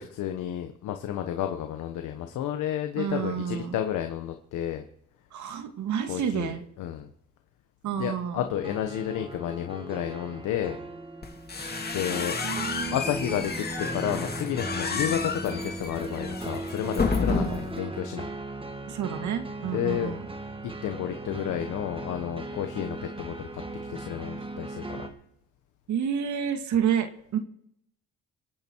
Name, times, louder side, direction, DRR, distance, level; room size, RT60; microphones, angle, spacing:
voice 1, 0.0-4.8 6.1-7.1 7.9-10.8 11.9-12.4 12.9-18.3 19.7-20.2 20.6-23.6 23.9-25.1, left 10 dB, 90° left, 6 dB, 1.3 m, -31 dB
voice 2, 2.9-3.8 5.3-6.6 7.8-8.4 12.4-13.0 17.3-17.7 18.9-20.2 25.9-27.4, right 8 dB, 70° right, 7 dB, 2.2 m, -29 dB
sound 1, 8.4-25.1, right 2 dB, 15° right, 2.2 m, -38 dB
sound 2, 11.2-17.8, left 4 dB, 30° left, 2.5 m, -31 dB
26.0 x 9.0 x 4.7 m, 0.74 s
cardioid pair, 90°, 30 cm